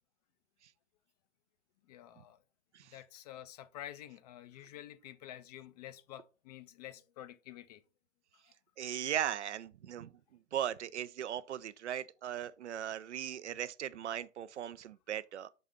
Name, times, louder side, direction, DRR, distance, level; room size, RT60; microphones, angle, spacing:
voice 1, 1.9-2.4 2.9-7.8 8.3-8.5, left 12 dB, 35° left, 0.5 m, -49 dB
voice 2, 8.8-10.1 10.5-15.5, right 10 dB, 65° right, 0.6 m, -38 dB
5.6 x 4.0 x 5.0 m
figure-of-eight pair, 110°, 36 cm